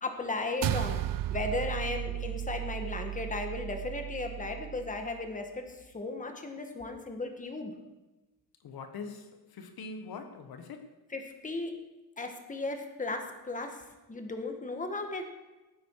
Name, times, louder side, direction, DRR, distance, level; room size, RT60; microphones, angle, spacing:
voice 1, 0.0-7.7 11.1-11.7 12.2-15.2, left 3 dB, 20° left, 5 dB, 1.7 m, -36 dB
sound 1, 0.6-5.2, right 13 dB, 65° right, 0.6 m, -35 dB
voice 2, 8.6-10.9, left 4 dB, 80° left, 7 dB, 1.5 m, -43 dB
18.5 x 9.6 x 4.8 m, 1.1 s
cardioid pair, 135°, 36 cm